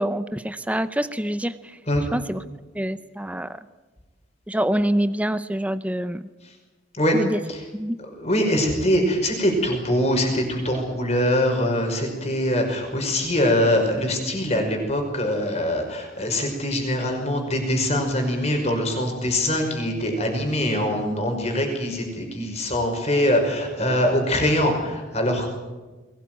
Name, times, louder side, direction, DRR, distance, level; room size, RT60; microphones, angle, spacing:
voice 1, 0.0-1.5 2.1-2.4 2.7-3.5 4.5-6.3 7.1-7.4 7.7-8.0, right 1 dB, 5° right, 12 dB, 0.6 m, -25 dB
voice 2, 8.2-25.5, left 1 dB, 35° left, 3 dB, 5.6 m, -23 dB
22.0 x 18.5 x 9.3 m, 1.2 s
head